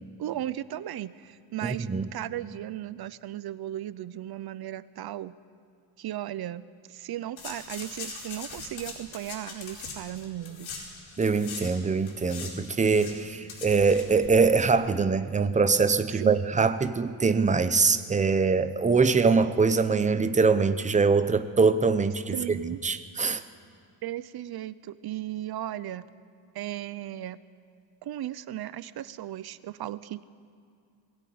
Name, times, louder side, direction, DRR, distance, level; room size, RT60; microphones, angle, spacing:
voice 1, 0.2-5.4 6.0-10.7 16.1-16.3 22.3-22.8 24.0-26.1 26.5-27.4 28.0-30.3, right 13 dB, 50° right, 16 dB, 0.6 m, -36 dB
voice 2, 1.6-2.1 11.2-22.6 22.8-23.4, right 4 dB, 15° right, 11 dB, 0.7 m, -23 dB
sound 1, 7.4-11.7 12.0-14.6 14.8-14.9, left 4 dB, 65° left, 4.6 m, -41 dB
21.0 x 16.5 x 9.4 m, 2.4 s
cardioid pair, 155°, 47 cm